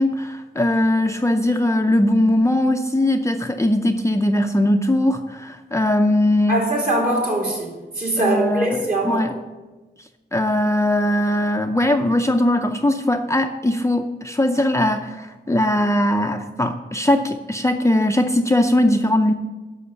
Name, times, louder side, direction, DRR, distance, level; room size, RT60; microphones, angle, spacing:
voice 1, 0.0-6.7 8.2-9.4 10.3-19.3, left 1 dB, 15° left, 4 dB, 0.5 m, -20 dB
voice 2, 6.5-7.7 8.0-9.2, right 2 dB, 50° right, -2 dB, 3.4 m, -21 dB
11.0 x 6.4 x 6.9 m, 1.2 s
wide cardioid pair, 130°, 19 cm